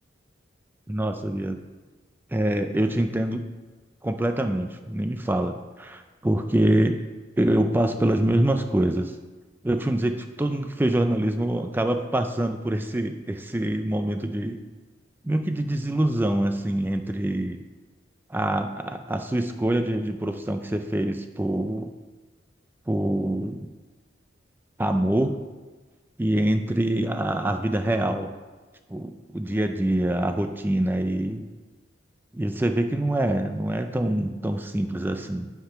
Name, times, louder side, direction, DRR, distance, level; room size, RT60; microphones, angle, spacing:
voice 1, 0.9-1.6 2.3-3.4 4.0-7.0 7.4-9.2 9.6-14.6 15.2-17.6 18.3-21.9 22.9-23.7 24.8-25.3 26.2-28.3 28.9-31.4 32.3-35.5, right 1 dB, 10° right, 7 dB, 0.4 m, -25 dB
8.6 x 5.9 x 5.6 m, 1.3 s
head